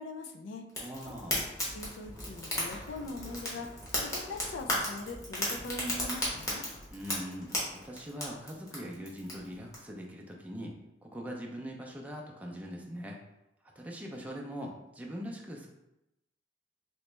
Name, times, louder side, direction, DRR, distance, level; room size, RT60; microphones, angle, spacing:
voice 1, 0.0-0.6 1.7-3.7 4.0-6.6, left 2 dB, 90° left, 5 dB, 0.4 m, -41 dB
Fire, 0.7-9.8, left 1 dB, 20° left, 0.9 m, -36 dB
voice 2, 0.8-1.4 6.9-10.7 11.0-13.2 13.8-15.7, equal, 10° right, -1 dB, 0.4 m, -42 dB
3.1 x 2.9 x 3.2 m, 0.91 s
head